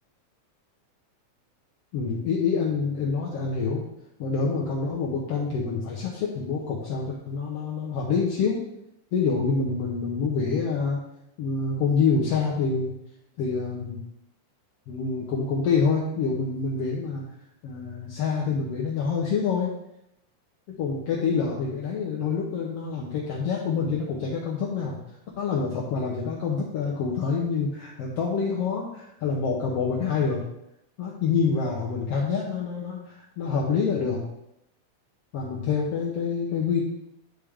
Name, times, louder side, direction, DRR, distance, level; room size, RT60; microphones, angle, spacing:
voice 1, 1.9-3.8 4.2-8.6 9.1-11.0 11.4-12.9 13.4-14.0 14.9-17.2 17.6-19.8 20.7-25.0 25.4-30.4 31.0-34.2 35.3-36.8, left 5 dB, 75° left, -3 dB, 1.4 m, -26 dB
10.0 x 3.4 x 3.5 m, 0.82 s
omnidirectional pair, 3.7 m